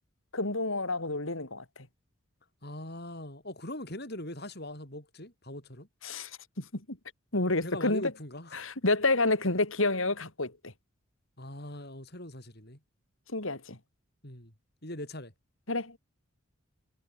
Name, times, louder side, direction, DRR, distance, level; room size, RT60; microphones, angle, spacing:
voice 1, 0.3-1.6 6.0-6.3 6.6-7.0 7.3-8.1 8.5-10.5 13.3-13.8 15.7-16.0, left 2 dB, 75° left, 4.0 m, -29 dB
voice 2, 2.6-5.9 7.6-8.7 11.4-12.8 14.2-14.5 14.8-15.3, left 1 dB, 50° left, 5.9 m, -41 dB
head